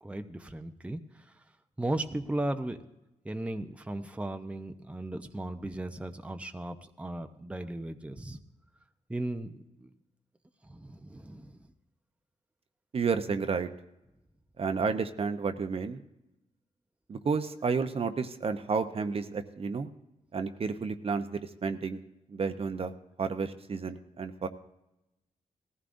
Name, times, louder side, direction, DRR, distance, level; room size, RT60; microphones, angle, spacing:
voice 1, 0.0-1.2 1.8-2.8 3.2-8.4 9.1-9.5 9.8-9.9 10.6-11.6, right 1 dB, 10° right, 6 dB, 0.7 m, -36 dB
voice 2, 12.9-13.7 14.6-16.0 17.1-19.9 20.3-22.0 22.3-22.9 23.2-24.5, right 5 dB, 45° right, 8 dB, 0.8 m, -31 dB
19.0 x 15.0 x 2.6 m, 0.91 s
cardioid pair, 100°, 13 cm